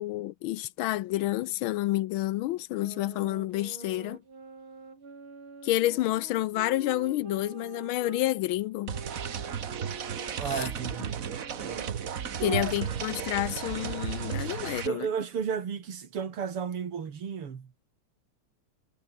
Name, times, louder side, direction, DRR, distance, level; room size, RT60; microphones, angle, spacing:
voice 1, 0.0-4.2 5.6-9.0 10.5-10.7 12.4-15.1, left 16 dB, 75° left, 1.4 m, -29 dB
sound 1, 2.7-8.2 8.9-14.5, right 4 dB, 70° right, 5.1 m, -47 dB
sound 2, 8.9-14.9, right 8 dB, 45° right, 1.4 m, -34 dB
voice 2, 10.4-11.2 11.6-12.7 14.8-17.7, right 7 dB, 90° right, 3.3 m, -33 dB
omnidirectional pair, 2.4 m